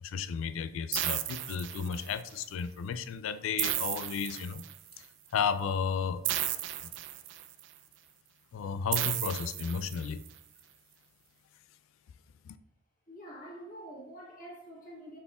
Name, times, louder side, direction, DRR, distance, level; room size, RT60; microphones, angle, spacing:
voice 1, 0.0-4.7 5.3-6.2 8.5-10.2 12.5-12.6, left 6 dB, 85° left, 12 dB, 0.3 m, -33 dB
sound 1, 0.9-2.3 3.6-4.9 6.2-7.6 8.9-10.3, right 12 dB, 65° right, 0.3 m, -34 dB
voice 2, 13.1-15.2, right 1 dB, 40° left, -4 dB, 1.5 m, -46 dB
5.3 x 4.1 x 2.3 m, 0.75 s
head